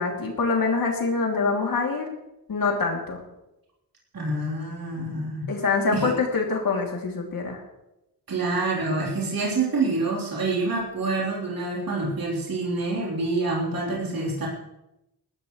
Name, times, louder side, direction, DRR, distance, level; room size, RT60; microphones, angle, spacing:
voice 1, 0.0-2.1 2.5-3.2 5.5-7.6, left 4 dB, 60° left, 0 dB, 2.9 m, -25 dB
voice 2, 4.1-5.5 5.9-6.1 8.3-14.5, right 3 dB, 60° right, -4 dB, 3.8 m, -27 dB
20.5 x 13.0 x 3.2 m, 0.90 s
wide cardioid pair, 170°, 39 cm